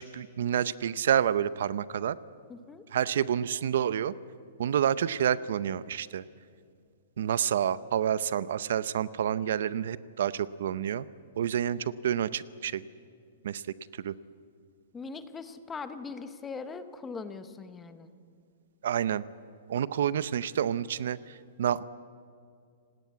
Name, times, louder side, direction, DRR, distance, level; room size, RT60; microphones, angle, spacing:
voice 1, 0.0-2.2 2.9-4.1 4.6-6.2 7.2-11.1 11.4-12.8 13.4-13.6 14.0-14.1 18.8-19.2 19.7-21.8, right 9 dB, 55° right, 17 dB, 0.6 m, -28 dB
voice 2, 2.5-2.8 14.9-18.1, left 4 dB, 10° left, 11 dB, 0.8 m, -41 dB
26.5 x 18.5 x 8.3 m, 2.3 s
hypercardioid pair, 180°, 0 cm